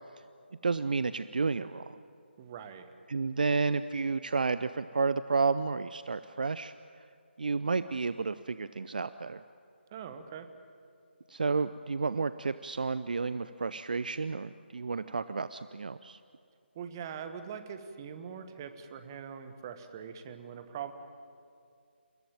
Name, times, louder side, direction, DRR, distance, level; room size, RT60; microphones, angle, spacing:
voice 1, 0.6-2.0 3.1-6.7 7.4-9.4 11.3-16.2, right 4 dB, 45° right, 13 dB, 0.6 m, -31 dB
voice 2, 2.4-2.9 9.9-10.5 16.7-20.9, right 7 dB, 20° right, 9 dB, 1.3 m, -42 dB
29.0 x 15.5 x 9.0 m, 2.4 s
figure-of-eight pair, 155°, 6 cm